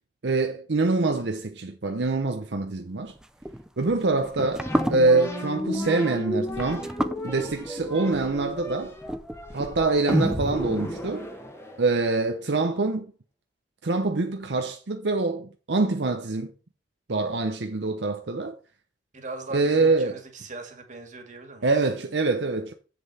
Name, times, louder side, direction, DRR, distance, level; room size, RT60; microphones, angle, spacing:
voice 1, 0.2-3.1 3.8-4.6 4.9-6.9 7.2-9.0 9.5-11.3 11.8-13.1 13.8-16.5 17.1-18.6 19.5-20.1 21.6-22.7, right 3 dB, 80° right, 0.8 m, -25 dB
sound 1, 3.1-10.1, equal, 5° right, 0.5 m, -34 dB
sound 2, 4.6-12.1, equal, 15° left, 1.4 m, -32 dB
voice 2, 19.1-21.9, right 2 dB, 45° right, 2.1 m, -40 dB
7.8 x 6.6 x 4.2 m
head